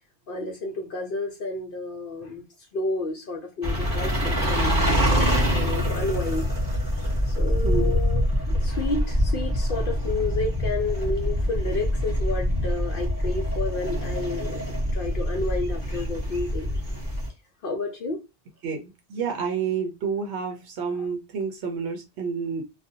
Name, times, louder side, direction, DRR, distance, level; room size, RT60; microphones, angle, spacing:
voice 1, 0.3-2.4 2.7-6.4 7.3-14.6 14.9-16.7 17.6-18.2 21.0-21.1, left 3 dB, 60° left, 0.7 m, -31 dB
sound 1, 3.6-17.3, equal, 10° left, 1.0 m, -25 dB
voice 2, 7.6-8.0 18.6-22.6, right 6 dB, 80° right, 0.8 m, -29 dB
2.4 x 2.2 x 2.6 m
omnidirectional pair, 1.1 m